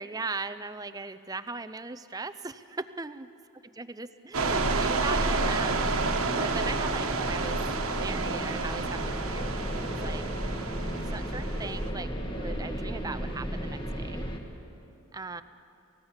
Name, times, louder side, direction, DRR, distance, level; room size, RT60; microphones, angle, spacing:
voice 1, 0.0-3.3 3.8-7.6 7.9-10.2 11.1-14.3 15.1-15.4, right 3 dB, 15° right, 11 dB, 0.5 m, -38 dB
sound 1, 4.3-11.9, right 4 dB, 85° right, 1.4 m, -31 dB
sound 2, 4.4-14.4, equal, 20° left, 1.7 m, -33 dB
29.0 x 16.5 x 7.3 m, 2.7 s
head